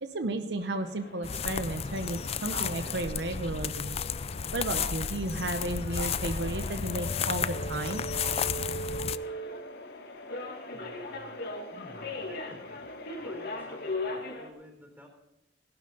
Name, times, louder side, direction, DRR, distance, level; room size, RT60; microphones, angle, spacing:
voice 1, 0.0-4.0 4.5-8.8, right 2 dB, 70° right, 7 dB, 0.9 m, -33 dB
sound 1, 0.6-14.5, left 1 dB, 60° left, 1.9 m, -40 dB
sound 2, 1.2-9.2, left 7 dB, 35° left, 0.4 m, -33 dB
sound 3, 3.1-14.0, left 3 dB, 80° left, 0.8 m, -50 dB
voice 2, 10.7-12.9 13.2-15.1, equal, 10° right, 1 dB, 3.7 m, -52 dB
17.0 x 12.0 x 4.0 m, 0.90 s
head